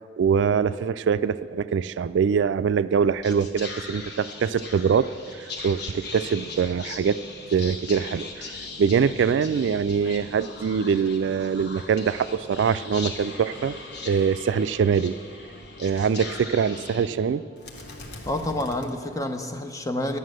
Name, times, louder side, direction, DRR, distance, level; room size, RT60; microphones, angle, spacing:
voice 1, 0.2-7.2 7.5-8.4 8.8-13.8 14.1-15.2 15.8-17.4, right 6 dB, 75° right, 14 dB, 0.3 m, -23 dB
Whispering, 2.9-19.5, left 3 dB, 65° left, 1.2 m, -40 dB
voice 2, 18.3-20.2, left 1 dB, 20° left, 6 dB, 0.7 m, -28 dB
12.0 x 9.5 x 6.4 m, 2.3 s
head